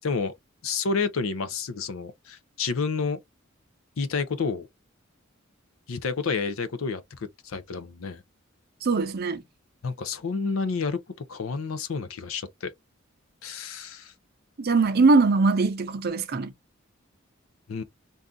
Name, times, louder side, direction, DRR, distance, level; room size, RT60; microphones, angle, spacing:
voice 1, 0.0-0.3 0.6-3.2 4.0-4.7 5.9-8.2 9.8-12.7 13.4-14.1 17.7-17.8, left 4 dB, 85° left, 0.5 m, -30 dB
voice 2, 8.8-9.4 14.6-16.5, right 3 dB, 50° right, 0.5 m, -21 dB
2.6 x 2.3 x 3.6 m
head